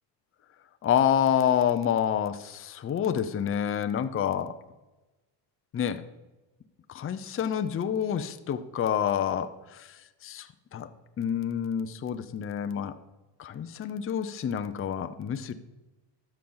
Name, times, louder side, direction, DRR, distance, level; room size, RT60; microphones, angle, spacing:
voice 1, 0.8-4.5 5.7-6.0 6.9-10.9 11.2-12.9 13.4-15.5, left 9 dB, 25° left, 9 dB, 0.6 m, -28 dB
13.5 x 5.6 x 3.9 m, 1.1 s
supercardioid pair, 90°, 49 cm